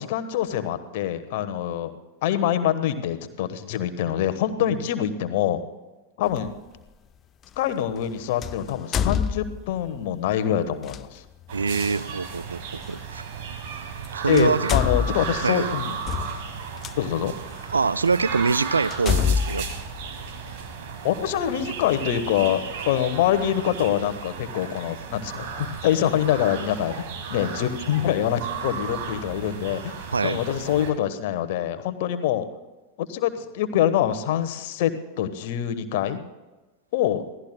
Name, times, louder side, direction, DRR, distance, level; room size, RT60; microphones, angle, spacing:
voice 1, 0.0-1.9 2.2-5.6 6.2-6.5 7.6-11.2 14.3-16.0 17.0-17.3 21.0-27.0 27.3-29.9 30.2-32.5 33.0-36.2 36.9-37.2, left 10 dB, 50° left, 10 dB, 1.1 m, -25 dB
sound 1, 6.3-6.5 8.4-9.9 10.8-11.0 12.9-13.0 13.9-14.1 14.3-16.9 17.6-17.7 18.2-18.3 18.9-20.7, left 7 dB, 30° left, 0.5 m, -26 dB
sound 2, 11.5-30.9, right 6 dB, 50° right, 1.8 m, -35 dB
voice 2, 11.5-13.2 14.1-14.7 15.4-15.7 17.7-19.7 30.1-30.4, right 4 dB, 75° right, 16 dB, 0.4 m, -24 dB
26.5 x 17.5 x 2.2 m, 1.1 s
figure-of-eight pair, 90°, 0 cm